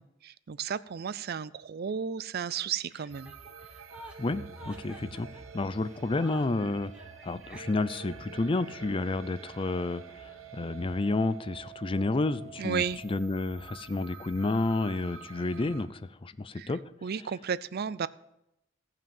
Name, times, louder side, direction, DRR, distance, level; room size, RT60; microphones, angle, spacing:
voice 1, 0.2-3.3 12.6-13.0 16.6-16.7 17.0-18.1, right 7 dB, 50° right, 18 dB, 0.4 m, -33 dB
Chuckle chortle, 2.9-8.1, equal, 5° right, 1.3 m, -50 dB
sound 1, 3.1-15.9, right 7 dB, 80° right, 1.0 m, -48 dB
voice 2, 4.2-5.3 5.5-6.9 7.2-16.8, left 2 dB, 25° left, 15 dB, 0.5 m, -30 dB
17.0 x 6.0 x 7.1 m, 0.86 s
head